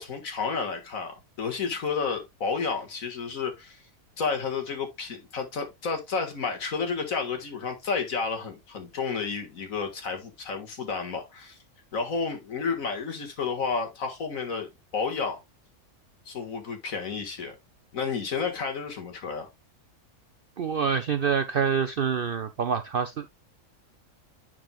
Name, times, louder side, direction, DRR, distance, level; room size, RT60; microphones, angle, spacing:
voice 1, 0.0-3.8 4.2-11.6 11.9-15.4 16.3-17.6 17.9-19.5, left 5 dB, 65° left, 1.9 m, -31 dB
voice 2, 20.6-23.2, right 7 dB, 60° right, 0.5 m, -26 dB
8.5 x 6.1 x 2.3 m
omnidirectional pair, 1.5 m